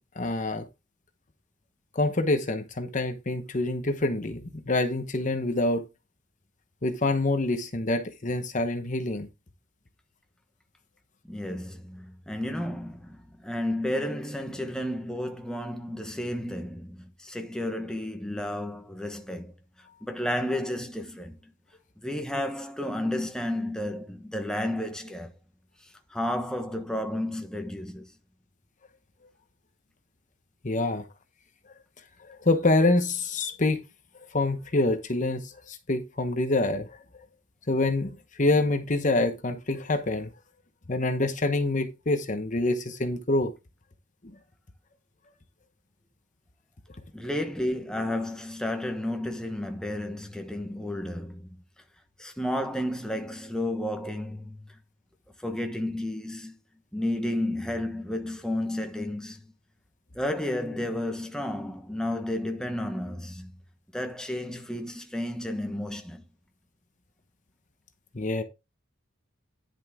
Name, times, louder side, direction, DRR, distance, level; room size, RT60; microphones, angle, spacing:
voice 1, 0.2-0.7 1.9-5.9 6.8-9.3 30.6-31.1 32.3-33.8 34.3-37.0 37.7-40.3 40.9-43.5 68.1-68.4, left 2 dB, 40° left, 1.0 m, -26 dB
voice 2, 11.3-19.5 19.8-21.4 22.0-25.3 25.8-28.1 47.1-51.5 52.2-54.8 55.4-56.6 56.9-59.5 60.1-63.5 63.9-66.2, left 1 dB, 5° left, 1.2 m, -32 dB
10.5 x 6.4 x 3.6 m
head